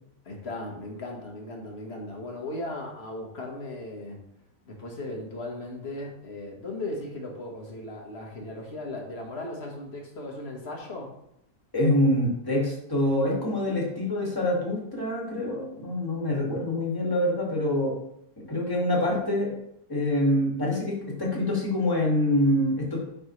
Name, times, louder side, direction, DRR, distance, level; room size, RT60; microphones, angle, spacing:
voice 1, 0.2-4.2 4.6-11.1, left 2 dB, 40° left, 0 dB, 1.6 m, -37 dB
voice 2, 11.7-17.9 18.4-19.6 19.9-23.0, left 1 dB, 15° left, -4 dB, 2.0 m, -25 dB
8.0 x 6.0 x 3.2 m, 0.78 s
omnidirectional pair, 1.8 m